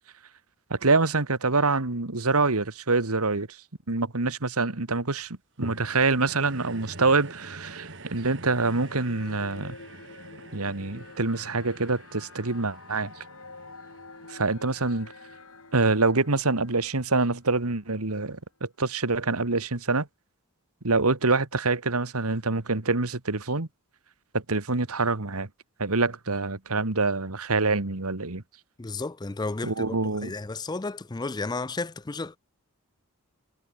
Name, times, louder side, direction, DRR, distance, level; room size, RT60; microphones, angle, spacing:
voice 1, 0.7-3.6 3.9-9.8 10.5-13.2 14.3-15.1 15.7-20.1 20.8-23.7 24.3-25.5 25.8-28.4 29.6-30.3, right 3 dB, 85° right, 1.9 m, -26 dB
sound 1, 5.6-16.1 16.7-16.8, right 2 dB, 55° right, 5.0 m, -46 dB
sound 2, 8.4-17.9, left 3 dB, 75° left, 3.4 m, -48 dB
voice 2, 28.8-30.0 30.2-32.4, left 3 dB, 20° left, 0.4 m, -32 dB
head